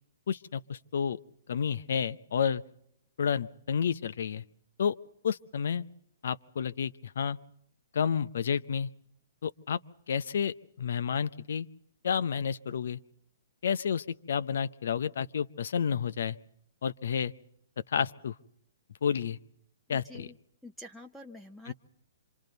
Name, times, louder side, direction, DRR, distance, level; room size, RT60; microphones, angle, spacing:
voice 1, 0.3-1.2 1.5-2.6 3.2-4.4 4.8-4.9 5.2-5.8 6.2-7.4 7.9-8.9 9.4-9.8 10.1-11.7 12.0-13.0 13.6-16.4 16.8-17.3 17.9-18.3 19.0-19.4 19.9-20.3 21.7-21.8, left 7 dB, 65° left, 13 dB, 0.8 m, -30 dB
voice 2, 19.9-20.3 20.6-21.7, left 1 dB, ahead, 3 dB, 0.9 m, -47 dB
26.5 x 26.0 x 4.0 m, 0.73 s
figure-of-eight pair, 125°, 0 cm